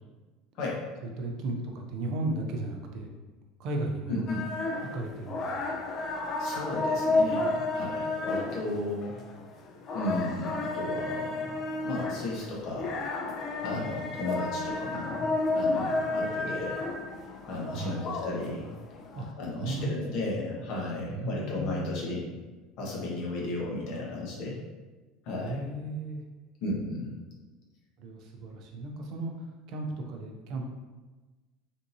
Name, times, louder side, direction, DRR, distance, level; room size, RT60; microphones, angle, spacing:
voice 1, 0.6-0.9 4.1-4.4 6.4-9.1 9.9-12.9 13.6-15.3 15.5-16.8 17.5-18.7 19.4-22.3 22.8-24.5 25.2-25.7 26.6-27.1, left 2 dB, 50° left, -3 dB, 0.9 m, -34 dB
voice 2, 1.2-3.1 3.6-4.4 4.9-5.7 13.6-14.0 17.7-18.1 19.1-19.3 19.5-20.4 21.1-22.0 25.4-26.2 28.0-30.6, right 2 dB, 50° right, 2 dB, 0.4 m, -35 dB
sound 1, 4.3-19.3, left 2 dB, 30° left, 0.3 m, -32 dB
3.5 x 2.7 x 2.6 m, 1.2 s
cardioid pair, 160°, 0 cm